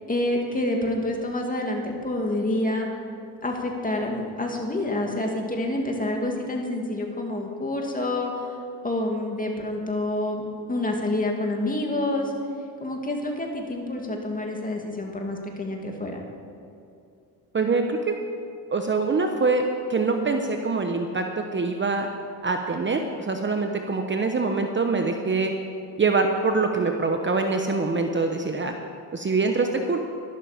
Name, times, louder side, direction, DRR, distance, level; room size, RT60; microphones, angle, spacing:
voice 1, 0.1-2.9 3.4-8.5 8.8-10.4 10.7-12.3 12.8-16.2, left 1 dB, 20° left, 1 dB, 2.5 m, -27 dB
voice 2, 17.5-18.1 18.7-21.3 21.5-22.1 22.4-25.5 26.0-28.7 29.1-30.0, right 3 dB, 25° right, 4 dB, 1.0 m, -24 dB
12.5 x 12.0 x 5.1 m, 2.6 s
cardioid pair, 85°, 42 cm